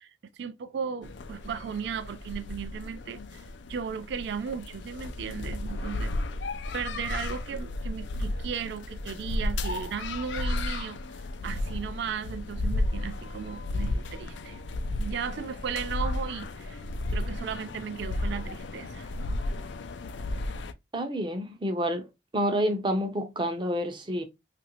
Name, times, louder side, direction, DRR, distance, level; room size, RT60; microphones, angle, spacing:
voice 1, 0.0-6.1 6.7-11.0 11.4-14.6 15.0-16.8 17.1-19.1, right 7 dB, 65° right, 0.3 m, -36 dB
sound 1, 1.0-20.7, left 2 dB, 75° left, 0.4 m, -33 dB
voice 2, 20.9-22.1 22.3-24.2, equal, 25° right, 0.6 m, -28 dB
3.0 x 2.5 x 2.9 m
head